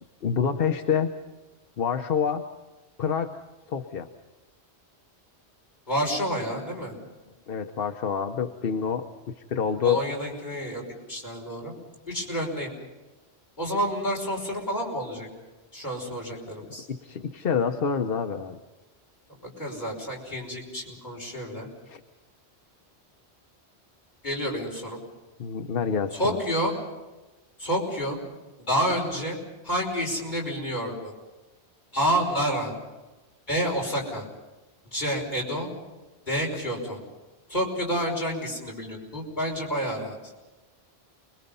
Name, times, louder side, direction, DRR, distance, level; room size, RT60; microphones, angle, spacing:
voice 1, 0.2-1.1 1.8-2.5 3.0-3.3 3.7-4.1 7.5-10.0 16.7-18.6 21.9-22.0 25.4-26.4, left 7 dB, 60° left, 7 dB, 1.1 m, -27 dB
voice 2, 5.9-6.9 9.8-10.8 11.1-11.7 12.1-12.7 13.6-15.3 15.7-16.9 19.4-21.7 24.2-25.0 26.1-26.7 27.6-28.2 28.6-29.4 29.6-31.1 31.9-32.7 33.5-34.3 34.9-35.7 36.3-37.0 37.5-40.2, equal, 40° left, -2 dB, 5.7 m, -29 dB
29.5 x 21.5 x 5.5 m, 1.1 s
omnidirectional pair, 1.1 m